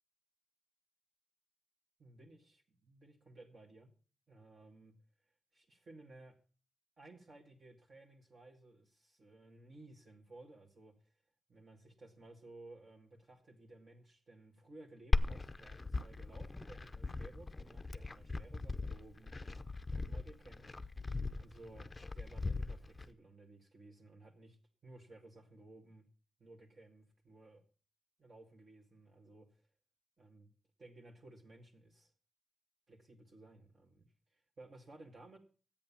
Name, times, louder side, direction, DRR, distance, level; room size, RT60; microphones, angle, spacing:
voice 1, 2.0-3.9 4.3-4.9 5.5-6.4 7.0-10.9 11.5-19.3 19.9-20.8 21.4-24.6 24.8-26.1 26.4-27.6 28.2-29.6 30.2-30.5 30.8-32.1 32.9-34.1 34.6-35.4, right 2 dB, 40° right, 1 dB, 2.0 m, -57 dB
Glass, 15.1-23.1, left 3 dB, 20° left, 0.7 m, -38 dB
13.5 x 8.8 x 7.2 m, 0.39 s
wide cardioid pair, 145°, 0 cm